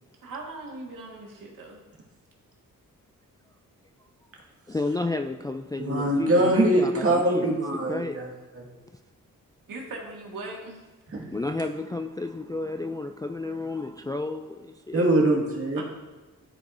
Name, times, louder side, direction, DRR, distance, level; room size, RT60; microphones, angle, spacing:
voice 1, 0.2-1.8 9.7-10.8 15.7-15.8, right 2 dB, 70° right, -2 dB, 1.8 m, -39 dB
voice 2, 4.7-7.5 7.9-8.2 11.3-15.1, left 2 dB, 10° left, 5 dB, 0.3 m, -31 dB
voice 3, 5.8-8.3 8.5-8.6 11.1-11.3 14.9-15.8, right 1 dB, 40° right, -1 dB, 1.9 m, -23 dB
11.5 x 4.8 x 2.6 m, 1.3 s
cardioid pair, 70°, 34 cm